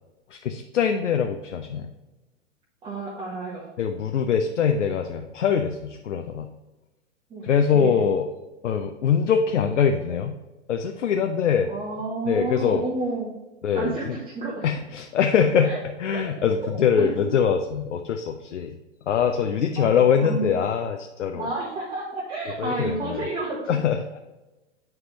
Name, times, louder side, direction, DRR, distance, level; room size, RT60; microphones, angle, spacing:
voice 1, 0.3-1.9 3.8-6.5 7.4-8.3 8.6-10.4 10.7-11.7 12.3-12.8 13.6-14.2 14.6-15.7 16.0-18.7 19.1-21.5 22.6-23.2 23.7-24.0, left 7 dB, 70° left, 6 dB, 0.5 m, -23 dB
voice 2, 2.8-3.6 7.3-7.4 7.7-8.0 11.7-13.3 13.7-14.6 15.6-15.8 16.1-16.5 17.0-17.2 19.8-19.9 20.2-20.5 21.3-23.6, right 2 dB, 15° right, -5 dB, 0.8 m, -31 dB
7.6 x 4.5 x 2.9 m, 1.1 s
figure-of-eight pair, 110°, 37 cm